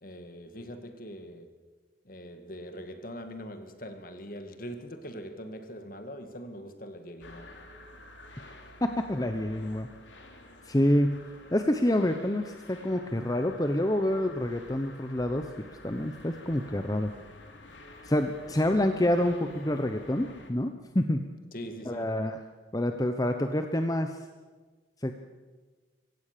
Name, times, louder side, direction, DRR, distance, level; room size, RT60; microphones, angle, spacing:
voice 1, 0.0-1.5 2.0-7.5 21.5-22.1, equal, 50° left, 2.0 m, -42 dB
sound 1, 7.2-20.5, left 2 dB, 80° left, 2.9 m, -50 dB
voice 2, 8.8-9.9 10.7-11.2 11.5-15.5 15.8-17.1 18.0-21.3 21.9-22.4 22.7-24.2 25.0-25.1, left 1 dB, 20° left, 0.9 m, -27 dB
25.0 x 16.0 x 6.8 m
head